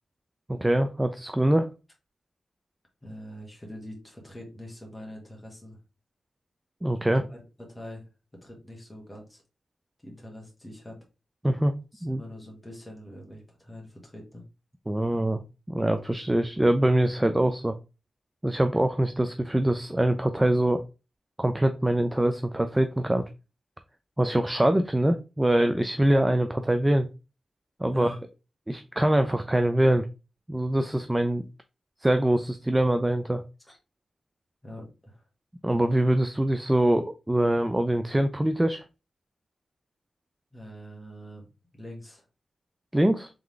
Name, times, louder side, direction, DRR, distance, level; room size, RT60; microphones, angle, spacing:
voice 1, 0.5-1.7 6.8-7.2 11.4-11.7 12.0-12.2 14.9-15.4 15.7-17.8 18.4-20.8 21.4-23.2 24.2-27.1 27.8-28.1 28.7-30.1 30.5-31.4 32.0-33.4 35.6-38.8 42.9-43.3, right 1 dB, 10° right, 8 dB, 0.3 m, -24 dB
voice 2, 3.0-5.8 7.0-7.4 7.7-8.0 8.4-9.4 10.0-11.0 11.9-14.4 27.9-28.2 33.6-33.8 34.6-35.2 40.5-41.4 41.7-42.2, equal, 10° left, -1 dB, 1.5 m, -44 dB
3.8 x 3.4 x 3.2 m, 0.29 s
wide cardioid pair, 165°, 0 cm